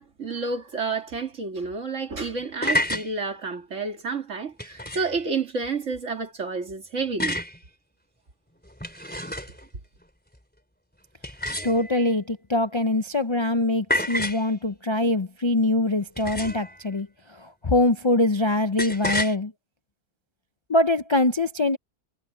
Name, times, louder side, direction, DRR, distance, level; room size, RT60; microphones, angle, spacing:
voice 1, 0.0-7.4, right 4 dB, 55° right, 2.6 m, -30 dB
sound 1, 2.4-3.1 4.6-5.2 7.2-7.6 8.6-9.6 11.2-12.1 13.9-14.5 16.2-16.7 18.8-19.3, left 1 dB, 5° left, 3.3 m, -28 dB
voice 2, 11.6-19.5 20.7-21.8, left 2 dB, 45° left, 0.3 m, -23 dB
omnidirectional pair, 1.6 m